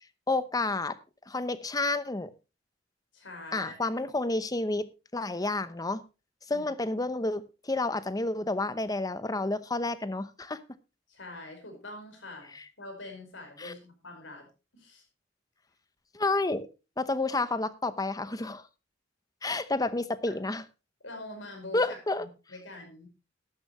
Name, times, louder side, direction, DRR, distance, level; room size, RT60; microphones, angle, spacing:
voice 1, 0.3-1.0 1.3-2.3 3.5-6.0 6.5-10.6 12.5-12.6 13.6-13.7 16.1-16.7 17.0-18.6 19.4-20.6 21.7-22.3, left 2 dB, 20° left, 0.8 m, -30 dB
voice 2, 3.1-4.0 6.5-6.6 11.1-14.5 14.7-15.0 20.3-20.4 21.0-23.1, left 2 dB, 85° left, 5.2 m, -45 dB
13.0 x 12.0 x 3.1 m
head